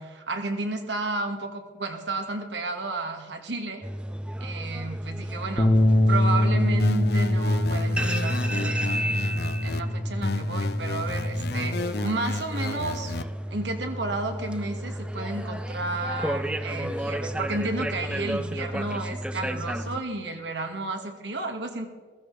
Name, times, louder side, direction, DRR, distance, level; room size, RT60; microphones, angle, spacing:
voice 1, 0.0-3.8 4.4-5.7 6.1-13.1 13.5-21.9, right 2 dB, 80° right, 4 dB, 2.1 m, -32 dB
sound 1, 3.8-20.0, right 1 dB, 5° right, 0.6 m, -33 dB
sound 2, 5.6-11.8, left 1 dB, 25° left, 0.8 m, -24 dB
sound 3, 6.8-9.8 10.2-13.2, left 3 dB, 60° left, 0.6 m, -32 dB
15.5 x 15.0 x 4.9 m, 1.5 s
head